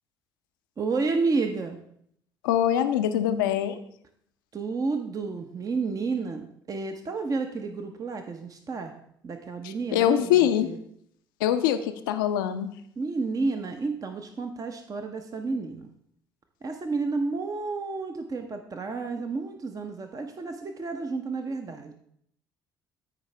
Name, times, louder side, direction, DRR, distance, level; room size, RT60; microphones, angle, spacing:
voice 1, 0.8-1.8 4.5-8.9 9.2-10.8 13.0-15.9 16.6-21.9, right 4 dB, 30° right, 6 dB, 0.8 m, -31 dB
voice 2, 2.4-3.8 9.9-10.7 11.4-12.7, left 10 dB, 70° left, 9 dB, 0.6 m, -23 dB
13.5 x 4.8 x 3.3 m, 0.69 s
figure-of-eight pair, 50°, 11 cm